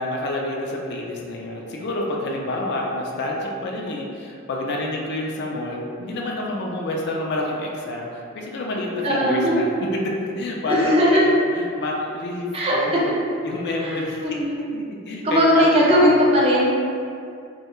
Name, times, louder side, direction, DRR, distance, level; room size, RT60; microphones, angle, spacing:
voice 1, 0.0-13.1 13.4-14.2 14.7-16.1, left 1 dB, 55° left, -1 dB, 0.3 m, -28 dB
voice 2, 9.0-9.6 10.7-11.2 12.5-13.0 13.8-14.6 15.2-16.9, equal, 30° right, -5 dB, 0.4 m, -19 dB
2.3 x 2.1 x 2.9 m, 2.4 s
head